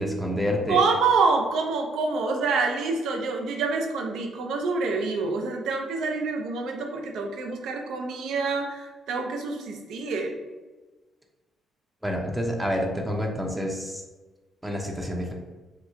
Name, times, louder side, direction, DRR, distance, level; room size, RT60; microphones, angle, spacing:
voice 1, 0.0-0.8 12.0-14.0 14.6-15.3, equal, 10° right, 0 dB, 0.5 m, -28 dB
voice 2, 0.7-10.3, right 4 dB, 80° right, 3 dB, 0.4 m, -26 dB
2.9 x 2.1 x 3.5 m, 1.2 s
cardioid pair, 90°, 0 cm